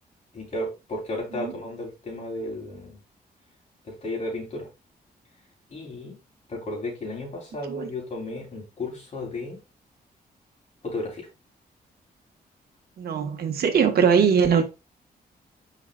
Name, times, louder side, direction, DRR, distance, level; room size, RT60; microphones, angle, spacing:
voice 1, 0.3-3.0 3.8-4.7 5.7-6.2 6.5-9.6 10.8-11.3, left 1 dB, 45° left, 3.8 m, -33 dB
voice 2, 13.0-14.6, right 6 dB, 75° right, 1.5 m, -21 dB
9.0 x 5.7 x 2.5 m
cardioid pair, 120°, 16 cm